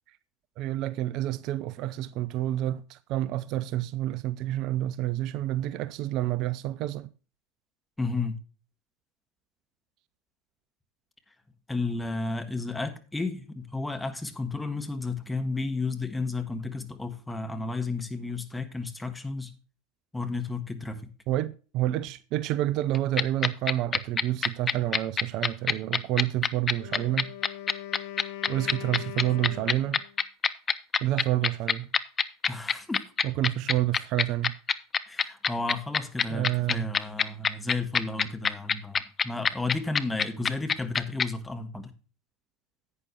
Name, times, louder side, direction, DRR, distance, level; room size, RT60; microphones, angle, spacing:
voice 1, 0.6-7.1 21.3-27.3 28.5-30.0 31.0-31.9 33.2-34.5 36.3-36.9, right 14 dB, 50° right, 0.5 m, -29 dB
voice 2, 8.0-8.4 11.7-19.5 20.1-21.1 29.0-29.1 32.5-33.0 35.1-41.9, left 3 dB, 10° left, 1.6 m, -32 dB
sound 1, 22.9-41.2, left 6 dB, 25° left, 0.6 m, -24 dB
Wind instrument woodwind instrument, 26.7-30.2, left 13 dB, 65° left, 0.7 m, -41 dB
11.0 x 8.9 x 2.9 m
figure-of-eight pair, 80°, 0 cm